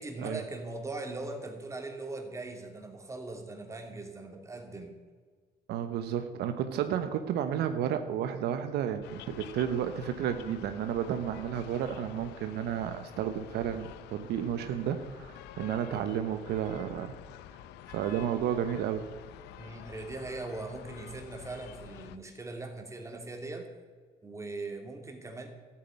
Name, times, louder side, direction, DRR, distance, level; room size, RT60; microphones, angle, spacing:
voice 1, 0.0-5.0 19.6-23.7 24.2-25.5, right 2 dB, 15° right, 3 dB, 2.8 m, -40 dB
voice 2, 5.7-17.1 17.9-19.1, right 9 dB, 75° right, 9 dB, 1.1 m, -32 dB
sound 1, 9.0-22.2, left 11 dB, 85° left, 0.8 m, -48 dB
13.0 x 8.9 x 9.1 m, 1.6 s
cardioid pair, 110°, 17 cm